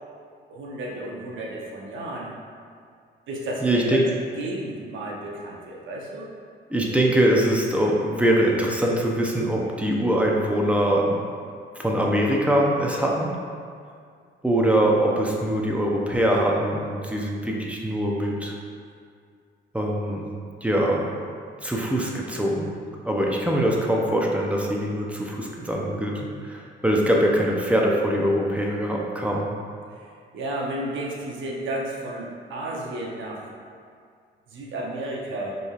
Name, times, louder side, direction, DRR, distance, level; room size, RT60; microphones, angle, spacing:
voice 1, 0.5-2.3 3.3-4.0 4.4-6.3 30.3-33.5 34.5-35.6, right 1 dB, 75° right, -2 dB, 0.8 m, -32 dB
voice 2, 3.6-4.1 6.7-11.2 11.8-13.3 14.4-18.5 19.7-20.3 20.6-21.1 21.6-22.7 23.0-29.6, right 1 dB, 5° right, -2 dB, 0.6 m, -23 dB
5.1 x 3.2 x 2.4 m, 2.2 s
cardioid pair, 90°, 20 cm